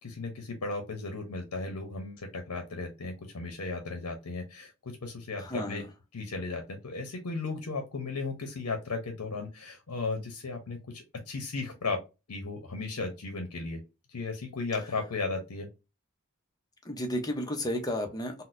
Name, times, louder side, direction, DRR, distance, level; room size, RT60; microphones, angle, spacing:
voice 1, 0.0-5.8 6.1-13.8 14.1-15.7, left 3 dB, 80° left, 0.7 m, -35 dB
voice 2, 5.4-5.9 14.8-15.0 16.8-18.4, left 1 dB, 15° left, 0.6 m, -33 dB
3.9 x 2.1 x 2.5 m
head